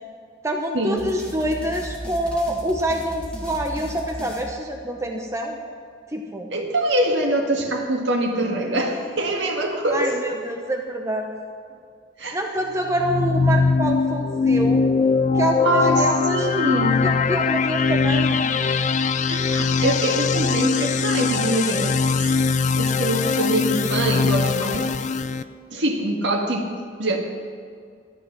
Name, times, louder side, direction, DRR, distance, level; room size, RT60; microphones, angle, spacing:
voice 1, 0.4-5.6 6.1-6.5 9.9-11.3 12.3-14.8 15.3-16.5 16.8-18.5, right 1 dB, 15° right, 2 dB, 0.9 m, -26 dB
sound 1, 1.0-5.2, equal, 5° left, 1.8 m, -37 dB
voice 2, 6.5-10.2 12.2-12.4 15.6-16.0 16.3-17.0 19.3-24.9 25.7-26.7 27.0-27.2, right 1 dB, 65° right, 0 dB, 2.0 m, -24 dB
sound 2, 12.9-25.4, left 4 dB, 40° left, 0.4 m, -21 dB
13.5 x 9.8 x 6.0 m, 2.2 s
head